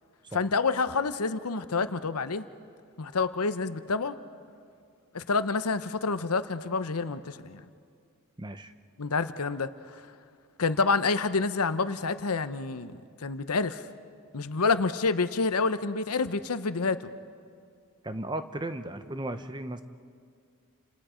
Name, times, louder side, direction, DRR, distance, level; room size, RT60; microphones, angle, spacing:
voice 1, 0.3-2.4 3.0-4.1 5.1-7.6 9.0-9.7 10.6-12.9 13.2-13.8 14.3-17.0, left 4 dB, 90° left, 12 dB, 0.9 m, -28 dB
voice 2, 8.4-8.7 18.0-19.8, right 1 dB, 20° right, 10 dB, 0.8 m, -35 dB
30.0 x 27.0 x 5.1 m, 2.3 s
head